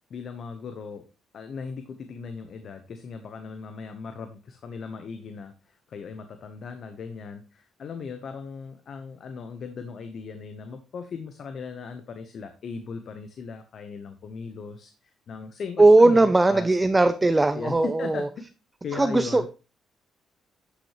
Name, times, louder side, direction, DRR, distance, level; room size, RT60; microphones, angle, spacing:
voice 1, 0.1-1.0 1.3-14.9 15.3-16.7 17.5-18.3 18.8-19.5, left 5 dB, 60° left, 8 dB, 1.0 m, -38 dB
voice 2, 15.8-18.3 18.9-19.5, right 2 dB, 20° right, 11 dB, 0.5 m, -18 dB
11.5 x 6.5 x 3.1 m, 0.32 s
cardioid pair, 90°, 0 cm